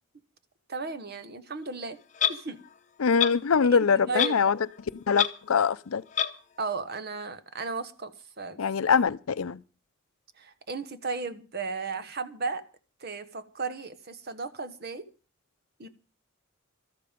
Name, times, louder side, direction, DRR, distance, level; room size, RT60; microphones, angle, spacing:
voice 1, 0.7-2.0 2.3-2.6 3.6-4.5 6.6-8.6 10.4-12.6 13.0-15.1 15.8-15.9, right 4 dB, 50° right, 1.1 m, -35 dB
Clock, 2.2-2.4 3.2-3.3 4.2-4.4 4.7-4.8 5.1-5.3 6.2-6.3, left 9 dB, 35° left, 0.8 m, -25 dB
voice 2, 3.0-4.6 5.1-6.0 8.6-9.6, left 6 dB, 85° left, 0.6 m, -23 dB
13.5 x 12.5 x 5.2 m
head